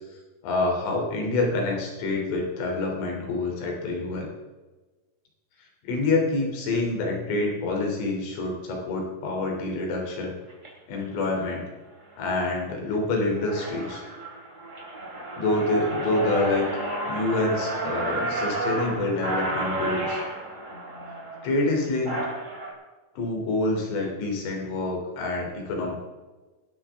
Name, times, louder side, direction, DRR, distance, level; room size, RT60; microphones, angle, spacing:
voice 1, 0.4-4.3 5.8-10.3 10.9-11.7 12.2-14.0 15.4-16.7 17.1-20.2 21.4-22.2 23.2-25.9, left 2 dB, 85° left, 0 dB, 5.7 m, -27 dB
sound 1, 10.5-10.7 11.3-11.6 12.1-12.5 12.9-13.0 13.3-22.7, right 2 dB, 20° right, 3.1 m, -31 dB
21.0 x 12.5 x 3.6 m, 1.2 s
omnidirectional pair, 5.5 m